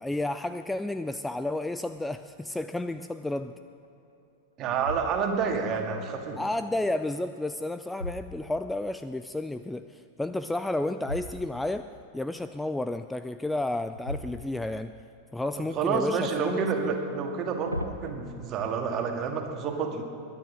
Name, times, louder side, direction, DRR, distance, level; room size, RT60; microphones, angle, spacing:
voice 1, 0.0-3.6 6.4-14.9 15.3-16.9, left 2 dB, 5° left, 10 dB, 0.4 m, -32 dB
sound 1, 1.9-2.3 2.9-3.0 3.6-4.2 4.7-5.6 7.3-8.9 11.0-11.8 13.9-15.0 15.4-16.2 17.2-18.1, left 1 dB, 90° left, 0.7 m, -40 dB
voice 2, 4.6-6.4 15.6-20.0, right 5 dB, 35° right, 3 dB, 2.0 m, -29 dB
21.0 x 10.5 x 6.3 m, 2.8 s
figure-of-eight pair, 90°, 0 cm